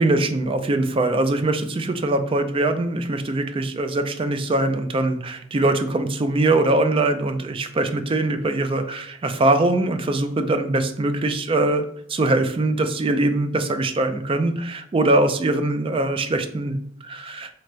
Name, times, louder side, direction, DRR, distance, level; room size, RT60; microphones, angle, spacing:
voice 1, 0.0-11.8 12.1-16.8 17.0-17.5, right 2 dB, 30° right, 8 dB, 0.4 m, -22 dB
4.2 x 3.2 x 2.5 m, 0.70 s
head